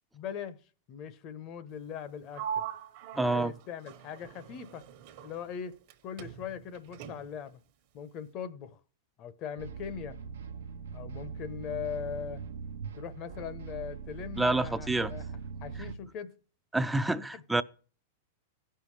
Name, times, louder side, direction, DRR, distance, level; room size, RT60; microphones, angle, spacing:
voice 1, 0.1-0.6 0.9-2.7 3.1-4.8 5.2-7.6 7.9-8.8 9.2-10.2 10.9-12.4 12.9-15.2 15.6-16.3 17.3-17.4, left 8 dB, 40° left, 0.8 m, -40 dB
Sliding door, 2.3-5.9 6.2-7.5, right 8 dB, 55° right, 1.1 m, -41 dB
voice 2, 3.2-3.5 14.4-15.1 16.7-17.6, right 2 dB, 5° right, 0.4 m, -28 dB
sound 1, 9.6-15.9, right 6 dB, 80° right, 0.7 m, -41 dB
16.5 x 5.6 x 3.2 m
hypercardioid pair, 110°, 0 cm